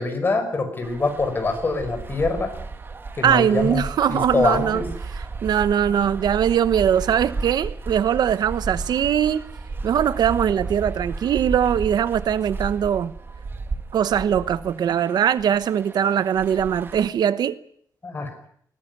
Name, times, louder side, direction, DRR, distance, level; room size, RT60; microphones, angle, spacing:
voice 1, 0.0-2.5 3.2-3.8 4.1-4.9 18.0-18.3, left 3 dB, 30° left, 5.5 m, -24 dB
sound 1, 0.8-17.1, right 3 dB, 30° right, 1.8 m, -34 dB
voice 2, 3.2-4.8 5.4-9.4 9.8-13.1 13.9-17.6, right 9 dB, 90° right, 1.0 m, -21 dB
21.0 x 18.5 x 9.6 m
wide cardioid pair, 160°, 7 cm